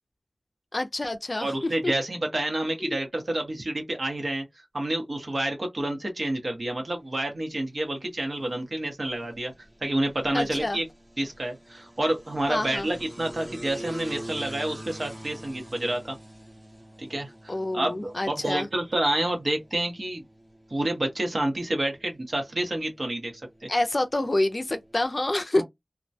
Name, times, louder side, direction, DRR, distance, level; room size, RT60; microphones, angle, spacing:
voice 1, 0.7-1.9 2.8-3.0 10.3-10.8 12.5-12.9 17.5-18.7 23.7-25.6, left 1 dB, 45° left, 0.4 m, -27 dB
voice 2, 1.4-9.5 9.8-10.9 11.2-16.2 17.0-20.2 20.7-23.3 23.6-23.7 25.6-25.7, right 1 dB, 60° right, 1.0 m, -29 dB
sound 1, 7.0-25.0, right 1 dB, 20° right, 0.8 m, -46 dB
2.2 x 2.2 x 2.6 m
wide cardioid pair, 65°, 0 cm